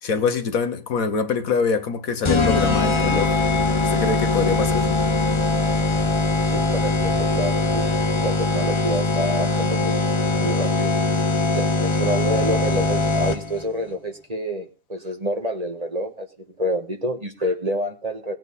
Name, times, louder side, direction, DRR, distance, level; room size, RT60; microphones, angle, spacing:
voice 1, 0.0-3.4 3.8-5.0, left 5 dB, 65° left, 1.5 m, -24 dB
sound 1, 2.2-13.6, left 3 dB, 30° left, 0.5 m, -21 dB
voice 2, 6.5-10.0 10.4-10.9 11.5-16.3 16.6-18.3, equal, 25° right, 1.7 m, -28 dB
19.5 x 8.9 x 4.1 m
omnidirectional pair, 1.6 m